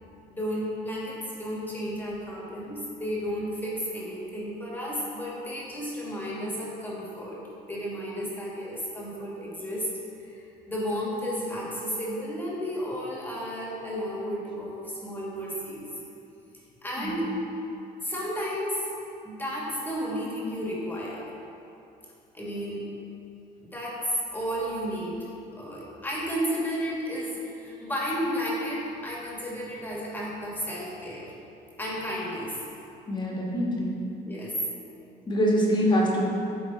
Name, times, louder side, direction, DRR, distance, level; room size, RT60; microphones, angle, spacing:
voice 1, 0.3-9.9 10.2-10.4 10.7-15.9 16.8-17.2 18.0-18.9 19.2-21.3 22.3-22.8 23.6-24.0 24.3-25.2 25.6-31.3 31.8-32.6 34.2-34.5, equal, 10° left, -5 dB, 1.5 m, -33 dB
voice 2, 33.1-33.9 35.3-36.3, equal, 25° left, -4 dB, 1.4 m, -24 dB
9.3 x 3.5 x 3.9 m, 2.7 s
cardioid pair, 110°, 17 cm